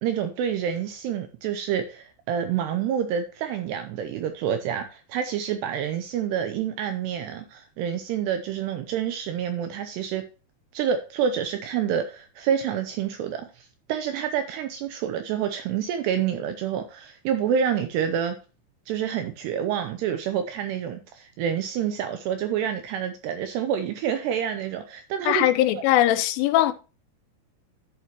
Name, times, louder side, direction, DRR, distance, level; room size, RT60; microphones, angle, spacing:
voice 1, 0.0-10.2 10.7-18.4 18.9-25.5 25.7-25.8, right 8 dB, 80° right, 2.5 m, -28 dB
voice 2, 25.3-26.7, left 13 dB, 90° left, 3.3 m, -20 dB
11.0 x 7.1 x 2.9 m
omnidirectional pair, 5.6 m